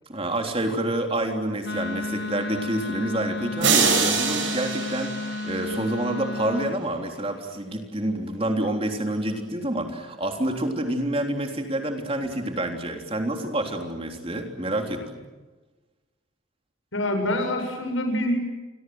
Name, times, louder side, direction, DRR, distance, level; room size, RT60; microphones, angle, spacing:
voice 1, 0.1-15.2, right 1 dB, 30° right, 4 dB, 3.5 m, -28 dB
Wind instrument woodwind instrument, 1.6-6.8, left 2 dB, 60° left, 1.6 m, -32 dB
sound 1, 3.6-6.0, right 5 dB, 70° right, 7.0 m, -24 dB
voice 2, 16.9-18.4, left 1 dB, 85° left, 5 dB, 7.5 m, -25 dB
29.5 x 24.5 x 7.9 m, 1.2 s
head